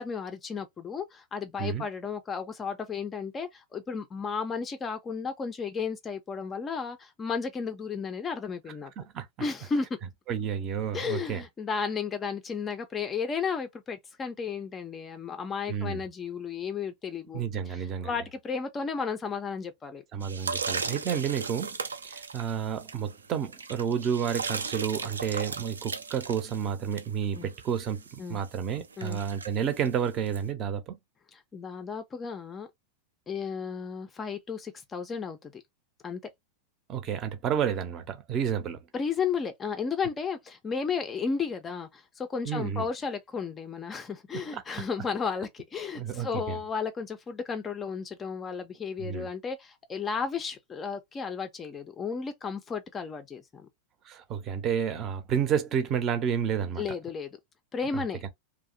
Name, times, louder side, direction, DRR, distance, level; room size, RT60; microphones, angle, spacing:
voice 1, 0.0-8.9 9.4-9.9 10.9-20.0 27.3-27.5 28.2-28.4 29.0-29.2 31.3-32.7 33.3-35.6 36.0-36.2 38.9-53.7 56.8-57.3 57.7-58.2, left 5 dB, 20° left, 0.4 m, -33 dB
voice 2, 9.0-9.3 10.3-11.4 15.7-16.0 17.3-18.2 20.1-21.8 22.0-31.0 36.9-38.8 42.5-42.9 44.3-44.6 46.0-46.6 49.0-49.3 54.0-56.9 57.9-58.0, right 8 dB, 30° right, 0.6 m, -30 dB
sound 1, 20.2-30.4, right 4 dB, 75° right, 0.3 m, -37 dB
2.6 x 2.0 x 2.5 m
figure-of-eight pair, 90°, 0 cm